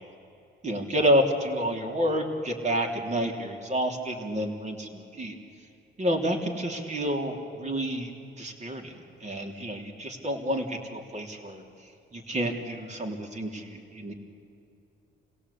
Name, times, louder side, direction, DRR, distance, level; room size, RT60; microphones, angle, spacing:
voice 1, 0.6-5.3 6.0-14.1, equal, 35° right, 3 dB, 3.4 m, -29 dB
26.0 x 17.5 x 8.5 m, 2.7 s
cardioid pair, 90°, 20 cm